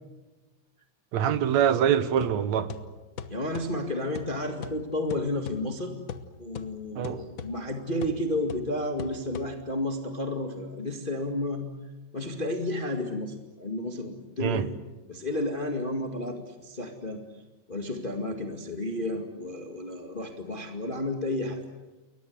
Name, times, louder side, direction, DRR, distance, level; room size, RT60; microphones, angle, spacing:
voice 1, 1.1-2.7 7.0-7.2 14.4-14.7, right 9 dB, 70° right, 2.4 m, -24 dB
sound 1, 2.2-9.9, left 6 dB, 85° left, 0.7 m, -42 dB
voice 2, 3.3-5.9 6.4-11.6 12.1-14.7 15.1-17.2 17.7-21.6, left 1 dB, 20° left, 1.8 m, -32 dB
29.5 x 22.5 x 8.0 m
omnidirectional pair, 3.4 m